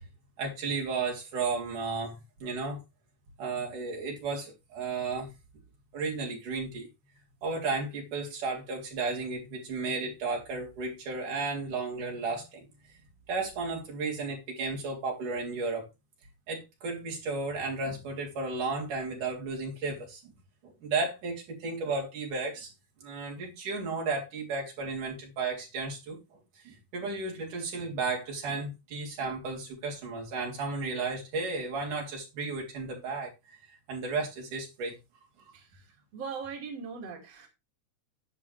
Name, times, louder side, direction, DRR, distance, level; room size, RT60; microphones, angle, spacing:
voice 1, 0.4-2.8 3.4-5.3 5.9-6.9 7.4-12.6 13.3-15.9 16.5-20.2 20.6-22.7 23.0-26.2 26.6-33.3 33.9-35.0, right 3 dB, 80° right, 4.9 m, -33 dB
voice 2, 35.5-35.8 36.1-37.5, right 5 dB, 55° right, 3.7 m, -40 dB
11.0 x 9.8 x 3.3 m
omnidirectional pair, 3.5 m